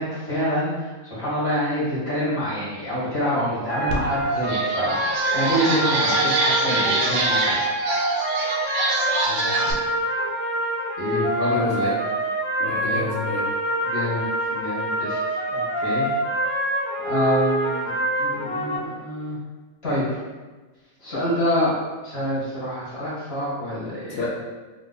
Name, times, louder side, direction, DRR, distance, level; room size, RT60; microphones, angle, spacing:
voice 1, 0.0-7.7 11.0-11.9 12.7-13.0 13.9-15.2 15.5-16.1 17.0-17.9 18.2-19.4 19.8-20.2 21.0-21.7 22.0-24.2, equal, 45° left, -10 dB, 1.8 m, -26 dB
sound 1, 3.7-18.8, right 1 dB, 85° left, 1.3 m, -26 dB
sound 2, 3.9-4.0 4.4-9.7, right 2 dB, 70° right, 0.9 m, -25 dB
voice 2, 9.3-9.7 11.5-12.1 12.6-13.5 24.1-24.3, left 3 dB, 65° left, -3 dB, 0.8 m, -30 dB
3.6 x 2.8 x 2.2 m, 1.3 s
omnidirectional pair, 1.5 m